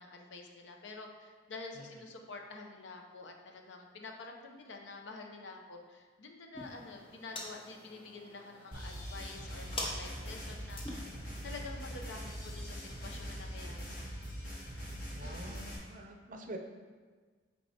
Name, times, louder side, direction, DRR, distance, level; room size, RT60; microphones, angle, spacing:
voice 1, 0.0-11.1 11.4-14.3, left 3 dB, 80° left, 3 dB, 0.7 m, -48 dB
sound 1, 6.5-13.8, left 1 dB, 30° left, 0.7 m, -47 dB
sound 2, 8.7-15.8, equal, 45° left, 1.3 m, -42 dB
voice 2, 15.2-16.6, right 1 dB, 45° right, 4 dB, 0.5 m, -46 dB
7.4 x 4.6 x 2.8 m, 1.5 s
head